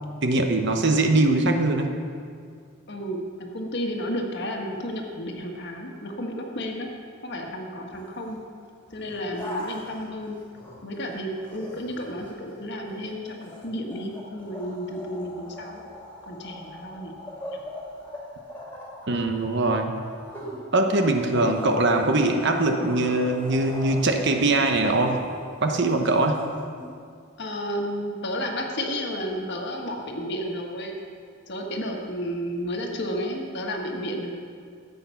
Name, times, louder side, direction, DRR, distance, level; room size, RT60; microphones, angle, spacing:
voice 1, 0.2-1.9 19.1-20.0 20.7-25.2 25.6-26.4, right 2 dB, 50° right, 5 dB, 1.0 m, -22 dB
voice 2, 2.9-6.9 7.2-8.4 8.9-10.4 10.8-15.8 16.2-17.2 17.5-17.6 27.4-31.0 31.5-34.4, equal, 50° left, 1 dB, 1.6 m, -32 dB
sound 1, 7.9-8.4 8.9-11.0 11.3-26.9, left 1 dB, 10° left, 2.5 m, -41 dB
14.5 x 8.6 x 5.7 m, 2.2 s
head